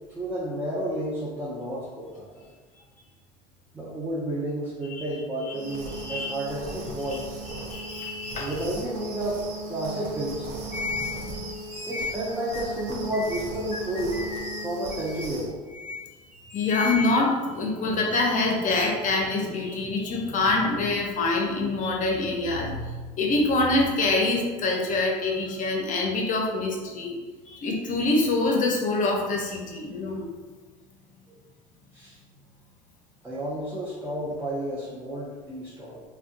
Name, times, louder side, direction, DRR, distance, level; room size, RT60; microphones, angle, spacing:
voice 1, 0.1-2.4 3.7-7.4 8.4-10.5 11.8-14.2 14.6-15.6 31.9-32.2 33.2-36.0, right 1 dB, 10° right, -7 dB, 0.6 m, -31 dB
sound 1, 5.5-15.5, right 2 dB, 60° right, 0.7 m, -37 dB
voice 2, 6.0-6.3 7.1-7.2 7.5-8.5 10.7-12.1 12.5-12.6 13.1-13.4 14.0-14.7 15.9-16.1 16.3-27.2 27.5-30.3, left 2 dB, 40° left, 0 dB, 0.7 m, -26 dB
2.5 x 2.2 x 2.5 m, 1.4 s
hypercardioid pair, 70°, 20 cm